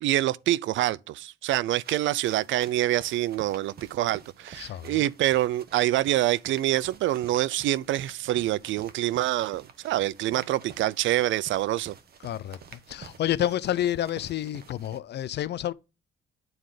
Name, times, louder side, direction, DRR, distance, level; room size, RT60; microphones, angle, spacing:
voice 1, 0.0-11.9, right 14 dB, 75° right, 0.4 m, -26 dB
sound 1, 1.8-15.0, right 6 dB, 50° right, 1.0 m, -49 dB
voice 2, 4.6-5.1 12.2-15.7, left 12 dB, 60° left, 0.5 m, -29 dB
9.4 x 3.8 x 4.9 m
cardioid pair, 90°, 20 cm